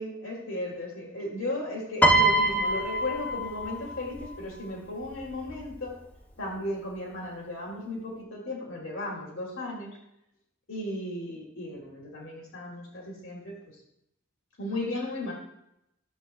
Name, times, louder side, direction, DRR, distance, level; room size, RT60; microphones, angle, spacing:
voice 1, 0.0-6.0 6.4-10.0 10.7-13.5 14.6-15.3, left 1 dB, 75° left, -2 dB, 2.3 m, -35 dB
Piano, 2.0-4.4 5.4-5.7, right 1 dB, 10° left, 0.6 m, -24 dB
13.5 x 7.4 x 2.2 m, 0.82 s
head